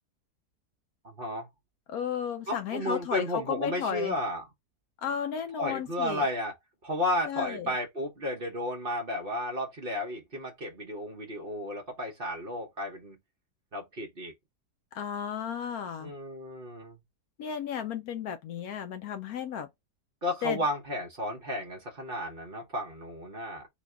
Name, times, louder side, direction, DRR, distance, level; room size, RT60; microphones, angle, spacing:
voice 1, 1.0-1.5 2.5-4.5 5.6-6.5 6.8-13.2 13.7-14.3 16.0-17.0 20.2-23.7, left 1 dB, 40° right, 1.0 m, -33 dB
voice 2, 1.9-4.2 5.0-6.3 7.3-7.7 14.9-16.1 17.4-19.7 20.4-20.6, left 8 dB, 70° left, 1.0 m, -34 dB
4.0 x 2.7 x 3.4 m
omnidirectional pair, 1.8 m